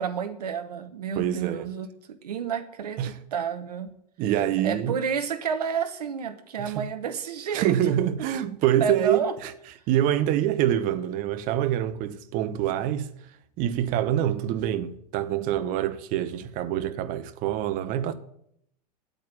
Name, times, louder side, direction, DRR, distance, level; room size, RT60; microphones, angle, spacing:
voice 1, 0.0-3.9 4.6-8.0 8.8-9.3, right 7 dB, 65° right, 1.1 m, -30 dB
voice 2, 1.2-1.7 3.0-3.2 4.2-5.0 6.6-6.9 7.5-9.5 9.9-13.1 13.6-18.1, right 11 dB, 40° right, 1.0 m, -26 dB
9.0 x 7.8 x 9.3 m
figure-of-eight pair, 85°, 21 cm